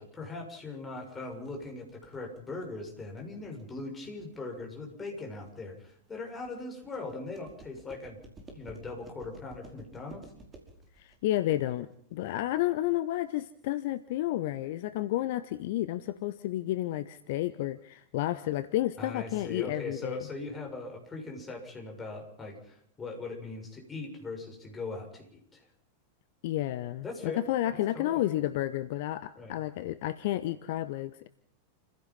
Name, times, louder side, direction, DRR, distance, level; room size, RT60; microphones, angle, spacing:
voice 1, 0.0-8.2 8.5-10.2 19.0-25.6 27.0-28.4 29.4-29.5, left 3 dB, 15° left, 1 dB, 6.7 m, -40 dB
sound 1, 1.0-13.0, right 2 dB, 20° right, 5.2 m, -53 dB
voice 2, 11.0-20.2 26.4-31.3, left 14 dB, 50° left, 14 dB, 0.8 m, -31 dB
29.5 x 16.0 x 5.6 m, 0.64 s
figure-of-eight pair, 90°, 0 cm